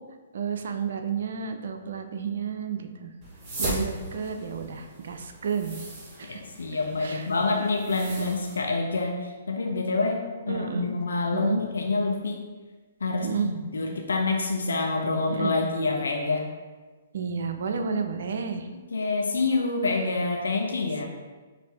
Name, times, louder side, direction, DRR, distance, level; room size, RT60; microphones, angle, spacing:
voice 1, 0.3-3.1 3.6-5.8 6.2-6.4 7.0-7.3 8.0-8.3 10.5-10.9 11.3-11.6 13.2-13.5 15.3-15.5 17.1-18.7, right 6 dB, 65° right, 6 dB, 0.4 m, -31 dB
sound 1, 3.2-8.6, right 1 dB, 25° right, 1.3 m, -37 dB
voice 2, 6.3-12.4 13.0-16.5 18.9-21.0, left 3 dB, 80° left, 1 dB, 0.6 m, -27 dB
4.9 x 2.6 x 3.4 m, 1.3 s
hypercardioid pair, 130°, 0 cm